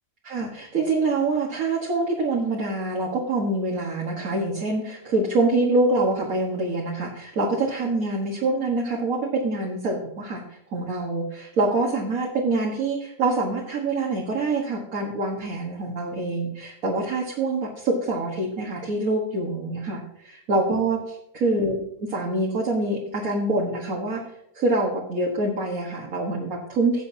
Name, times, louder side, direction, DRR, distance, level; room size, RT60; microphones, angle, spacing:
voice 1, 0.2-10.4 10.7-20.0 20.5-21.0 21.4-24.2 24.6-27.0, right 2 dB, 55° right, -2 dB, 1.9 m, -25 dB
16.5 x 7.5 x 2.7 m, 0.75 s
omnidirectional pair, 1.8 m